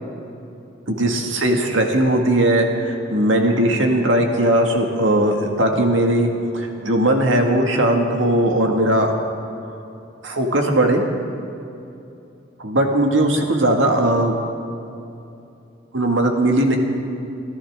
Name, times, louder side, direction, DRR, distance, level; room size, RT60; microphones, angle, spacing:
voice 1, 0.9-6.3 6.5-9.1 10.2-11.0 12.6-14.3 15.9-16.8, right 1 dB, 85° right, 2 dB, 1.9 m, -18 dB
26.0 x 14.5 x 3.7 m, 2.7 s
head